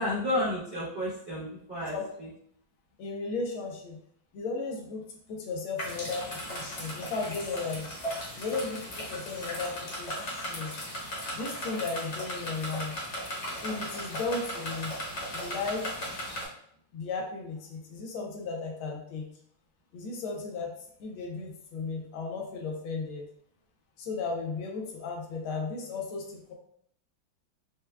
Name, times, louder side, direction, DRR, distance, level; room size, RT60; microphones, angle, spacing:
voice 1, 0.0-2.3, left 1 dB, 65° right, -10 dB, 0.4 m, -31 dB
voice 2, 3.0-4.0 4.3-7.9 8.4-10.7 11.3-12.9 13.6-14.9 15.3-15.9 16.9-19.2 19.9-20.7 21.0-23.2 24.0-26.5, left 4 dB, 85° left, 0 dB, 1.5 m, -35 dB
sound 1, 5.8-16.5, equal, 50° left, 0.9 m, -37 dB
4.5 x 2.1 x 2.3 m, 0.68 s
omnidirectional pair, 2.3 m